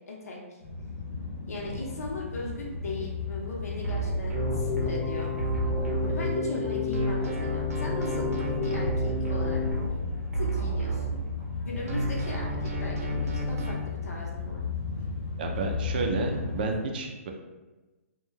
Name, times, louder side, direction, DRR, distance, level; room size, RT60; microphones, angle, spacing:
voice 1, 0.1-0.6 1.5-5.3 6.1-9.6 10.4-11.2 11.7-14.6, left 2 dB, 85° left, -2 dB, 0.8 m, -38 dB
sound 1, 0.6-16.8, left 4 dB, 55° left, 0.8 m, -36 dB
sound 2, 3.8-6.6 6.9-11.6 11.9-13.7, right 2 dB, 80° right, 0.6 m, -31 dB
Keyboard (musical), 4.3-9.7, left 4 dB, 5° right, 0.8 m, -32 dB
voice 2, 15.4-17.3, right 3 dB, 40° right, 2 dB, 0.4 m, -30 dB
2.2 x 2.2 x 3.1 m, 1.2 s
hypercardioid pair, 165°, 8 cm